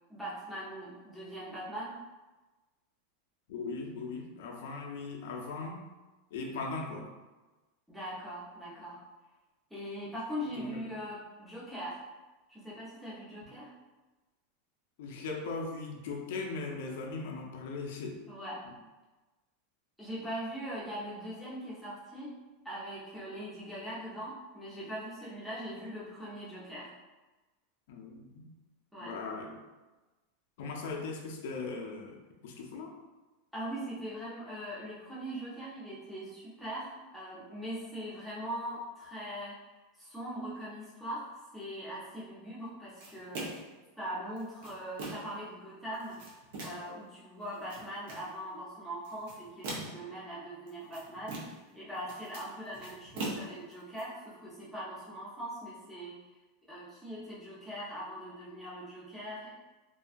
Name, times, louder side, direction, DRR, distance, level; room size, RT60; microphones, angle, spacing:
voice 1, 0.1-2.0 7.9-9.0 9.7-12.0 12.5-13.7 18.3-18.6 20.0-22.3 22.6-26.9 28.9-29.1 33.5-39.6 40.0-43.6 44.0-46.2 46.6-56.2 56.7-59.5, equal, ahead, -9 dB, 0.7 m, -41 dB
voice 2, 3.5-5.8 6.3-7.1 10.6-10.8 15.0-18.2 27.9-28.5 29.0-29.6 30.6-32.9, left 3 dB, 70° left, 1 dB, 0.5 m, -39 dB
sound 1, 43.0-43.8 44.4-45.4 45.9-46.9 47.5-48.3 49.0-50.1 50.7-51.7 52.0-54.0, right 2 dB, 65° right, 0.7 m, -41 dB
2.7 x 2.2 x 2.5 m, 1.2 s
supercardioid pair, 160°, 0 cm